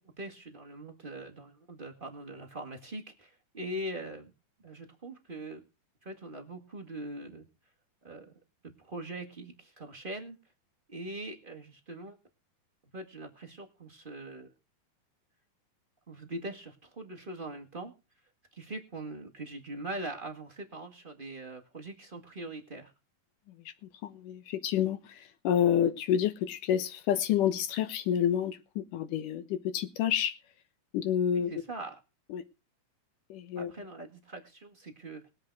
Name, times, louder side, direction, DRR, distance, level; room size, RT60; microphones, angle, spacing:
voice 1, 0.2-4.3 4.6-5.6 6.0-7.4 8.0-8.3 8.8-10.4 10.9-12.2 12.9-14.5 16.1-17.9 18.5-22.9 31.3-32.0 33.5-35.2, right 1 dB, 35° right, 0.7 m, -42 dB
voice 2, 24.0-30.4 30.9-31.5 32.3-32.4 33.3-33.7, left 9 dB, 70° left, 2.4 m, -29 dB
20.5 x 7.8 x 4.6 m
omnidirectional pair, 4.1 m